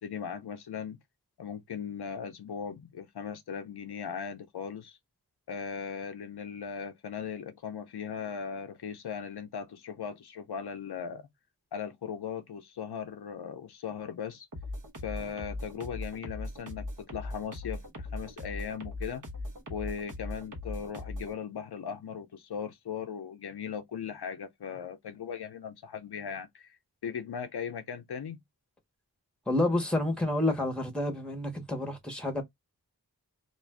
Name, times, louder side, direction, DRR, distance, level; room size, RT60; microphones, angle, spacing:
voice 1, 0.0-1.0 1.4-5.0 5.5-11.3 11.7-14.5 15.0-19.2 19.7-26.8 27.0-28.4, left 7 dB, 90° left, 0.6 m, -38 dB
sound 1, 14.5-21.3, left 2 dB, 55° right, 0.9 m, -39 dB
voice 2, 29.5-32.4, left 1 dB, ahead, 0.9 m, -29 dB
2.5 x 2.2 x 3.3 m
wide cardioid pair, 65°, 38 cm